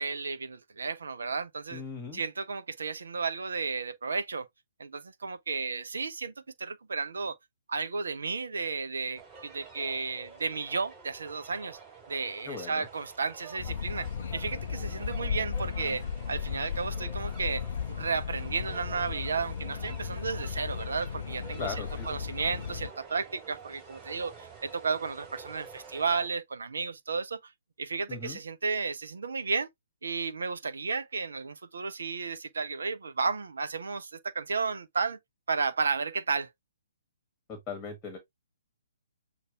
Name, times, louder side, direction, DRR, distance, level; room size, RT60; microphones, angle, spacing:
voice 1, 0.0-1.8 2.1-4.5 4.8-6.3 6.6-7.4 7.7-11.8 12.1-27.4 27.8-29.7 30.0-35.2 35.5-36.5, right 4 dB, 60° right, 0.6 m, -33 dB
voice 2, 1.7-2.2 12.4-12.9 21.6-22.1 28.1-28.4 37.5-38.2, left 5 dB, 15° left, 1.4 m, -38 dB
sound 1, 9.1-26.3, right 5 dB, 20° right, 4.0 m, -49 dB
sound 2, 13.6-22.9, left 7 dB, 50° left, 0.4 m, -35 dB
6.6 x 2.4 x 3.3 m
figure-of-eight pair, 125°, 0 cm